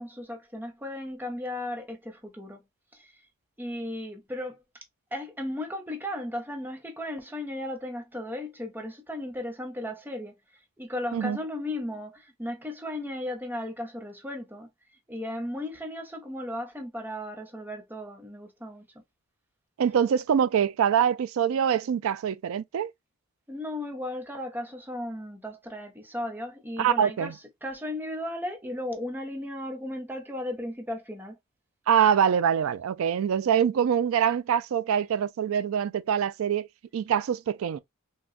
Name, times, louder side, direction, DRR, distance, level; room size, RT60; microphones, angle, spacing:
voice 1, 0.0-2.6 2.9-3.1 3.6-4.6 5.1-10.3 10.8-14.7 15.1-18.9 23.5-31.4, left 1 dB, 10° right, 0.7 m, -35 dB
voice 2, 19.8-22.9 26.8-27.3 31.9-36.7 36.9-37.8, right 8 dB, 70° right, 0.3 m, -24 dB
3.7 x 2.2 x 2.4 m
head